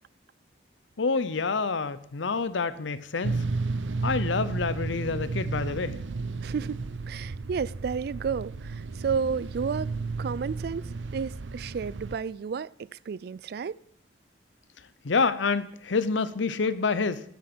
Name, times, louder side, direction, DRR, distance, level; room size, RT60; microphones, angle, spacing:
voice 1, 1.0-3.4 4.0-6.0 15.0-17.2, left 4 dB, 90° left, 0.7 m, -27 dB
sound 1, 3.2-12.2, right 3 dB, 85° right, 0.7 m, -33 dB
voice 2, 6.4-6.8 7.1-9.9 10.2-13.8, right 6 dB, 55° right, 0.3 m, -32 dB
9.7 x 8.4 x 6.1 m
head